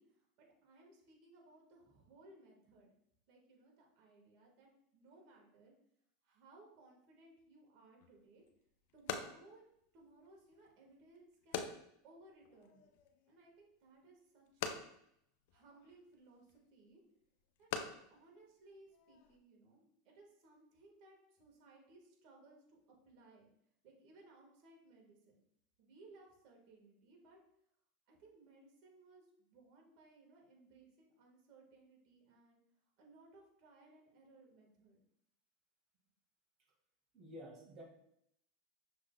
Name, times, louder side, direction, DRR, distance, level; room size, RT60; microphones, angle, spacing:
voice 1, 0.0-2.9 3.3-5.7 6.2-8.4 8.9-9.6 9.9-11.6 12.0-12.9 13.3-14.8 15.5-17.0 17.6-23.5 23.8-25.4 25.8-27.4 28.1-32.6 33.0-35.0, right 2 dB, 60° right, -1 dB, 1.7 m, -63 dB
sound 1, 8.0-19.4, left 7 dB, 65° left, 0.5 m, -48 dB
voice 2, 37.1-37.8, equal, 40° right, -2 dB, 1.8 m, -51 dB
6.3 x 3.6 x 2.3 m, 0.73 s
hypercardioid pair, 100°, 0 cm